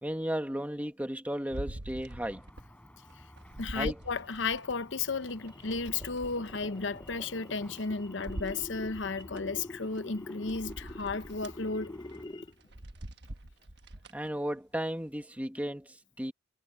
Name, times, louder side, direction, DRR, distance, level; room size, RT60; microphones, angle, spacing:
voice 1, 0.0-2.4 3.7-4.0 14.1-16.3, equal, 10° right, 2.0 m, -34 dB
sound 1, 1.5-2.7 3.1-4.8 5.3-7.9 8.2-9.4 10.0-10.1 10.5-11.6 12.0-12.2 12.6-14.3 14.7-14.8, right 1 dB, 60° right, 1.3 m, -44 dB
sound 2, 2.1-12.3, equal, 5° left, 4.6 m, -54 dB
voice 2, 3.6-11.9, left 4 dB, 70° left, 0.9 m, -34 dB
sound 3, 4.0-12.7, left 2 dB, 25° left, 0.9 m, -47 dB
head